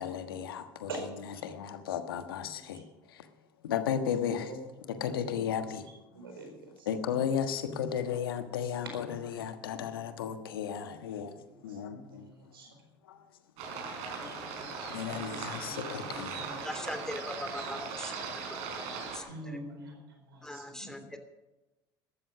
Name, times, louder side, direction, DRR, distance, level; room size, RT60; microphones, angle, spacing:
voice 1, 0.0-0.9 1.4-2.8 3.1-3.3 3.6-4.5 4.9-5.9 6.9-12.3 13.0-13.2 13.6-14.2 14.9-16.5, left 8 dB, 85° left, 9 dB, 1.4 m, -34 dB
voice 2, 0.9-1.4 2.7-3.1 4.2-5.4 6.1-6.9 7.2-7.4 8.8-10.3 10.8-12.8 14.1-14.8 15.0-16.6 19.2-21.1, right 2 dB, 90° right, 3 dB, 4.4 m, -47 dB
sound 1, 13.6-19.2, right 5 dB, 65° right, 4.6 m, -39 dB
voice 3, 16.6-18.6 19.1-19.6 20.4-21.2, left 1 dB, 5° left, 7 dB, 2.9 m, -41 dB
13.5 x 13.0 x 6.2 m, 1.1 s
hypercardioid pair, 70°, 12 cm